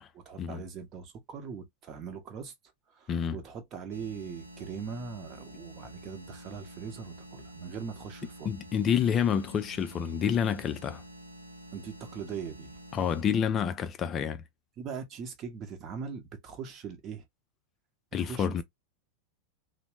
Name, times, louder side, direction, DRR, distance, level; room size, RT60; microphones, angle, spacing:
voice 1, 0.3-2.5 2.9-8.5 11.7-12.8 14.8-17.2 18.2-18.6, right 6 dB, 30° right, 0.8 m, -41 dB
sound 1, 3.9-13.2, equal, 90° right, 0.6 m, -49 dB
voice 2, 8.5-11.0 12.9-14.4 18.1-18.6, left 8 dB, 25° left, 0.3 m, -28 dB
3.0 x 2.0 x 2.9 m
figure-of-eight pair, 90°, 0 cm